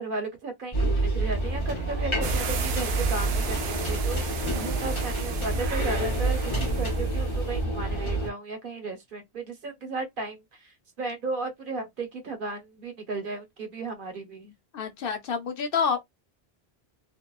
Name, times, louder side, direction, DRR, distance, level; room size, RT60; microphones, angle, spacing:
voice 1, 0.0-14.5, right 3 dB, 55° right, 1.1 m, -35 dB
sound 1, 0.7-8.3, right 2 dB, 30° left, 1.0 m, -27 dB
sound 2, 2.2-7.4, right 7 dB, 80° right, 0.9 m, -36 dB
voice 2, 14.7-16.0, left 6 dB, 65° left, 0.8 m, -28 dB
2.7 x 2.2 x 2.2 m
omnidirectional pair, 1.0 m